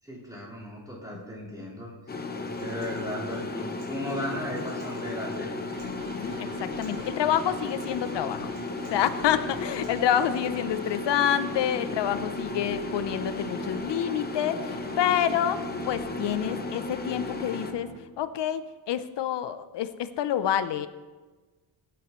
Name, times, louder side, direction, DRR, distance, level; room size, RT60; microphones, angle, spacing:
voice 1, 0.0-5.5, equal, 10° right, -8 dB, 4.4 m, -36 dB
sound 1, 2.1-17.7, left 3 dB, 20° left, 0.8 m, -35 dB
Acoustic guitar, 2.3-10.3, right 2 dB, 55° right, 4.2 m, -50 dB
sound 2, 5.7-18.0, right 7 dB, 85° right, 1.3 m, -43 dB
voice 2, 5.8-8.5 8.9-17.9 18.2-20.9, left 10 dB, 65° left, 13 dB, 0.7 m, -28 dB
17.5 x 10.0 x 3.1 m, 1.3 s
wide cardioid pair, 150°, 45 cm